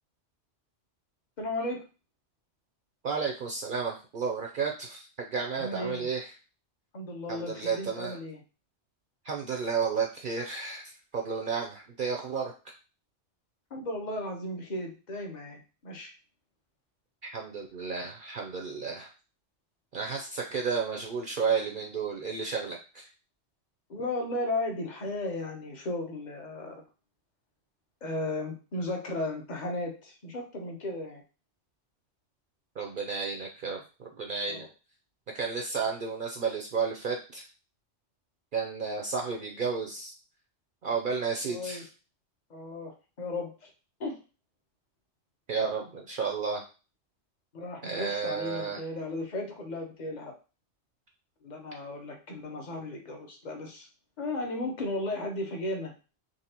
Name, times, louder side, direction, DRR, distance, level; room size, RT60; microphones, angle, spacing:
voice 1, 1.4-1.8 5.5-6.1 6.9-8.4 13.7-16.1 23.9-26.8 28.0-31.2 34.5-34.7 41.5-41.8 42.5-43.7 44.0-44.2 47.5-50.3 51.4-53.9 54.2-55.9, left 2 dB, 45° left, 3 dB, 1.0 m, -35 dB
voice 2, 3.0-6.3 7.3-8.2 9.2-12.5 17.2-19.1 19.9-23.1 32.8-34.7 35.3-37.5 38.5-40.1 40.8-41.9 45.5-46.6 47.8-48.8, right 5 dB, 60° right, 2 dB, 0.6 m, -32 dB
4.0 x 3.1 x 2.8 m, 0.33 s
omnidirectional pair, 1.2 m